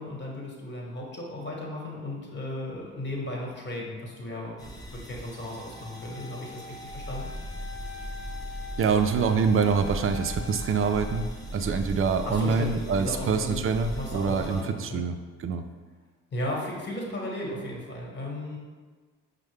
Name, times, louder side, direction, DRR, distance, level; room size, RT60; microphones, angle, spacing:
voice 1, 0.0-7.3 12.2-13.6 13.9-15.0 16.3-18.6, left 1 dB, 35° left, -2 dB, 1.2 m, -35 dB
sound 1, 4.6-14.6, right 1 dB, 10° left, 0.8 m, -42 dB
Wind instrument woodwind instrument, 5.3-11.3, left 6 dB, 15° right, 1.0 m, -44 dB
sound 2, 6.9-13.2, equal, 85° left, 0.6 m, -39 dB
voice 2, 8.8-15.6, right 5 dB, 45° right, 8 dB, 0.4 m, -25 dB
5.3 x 2.1 x 3.3 m, 1.5 s
supercardioid pair, 60°, 30 cm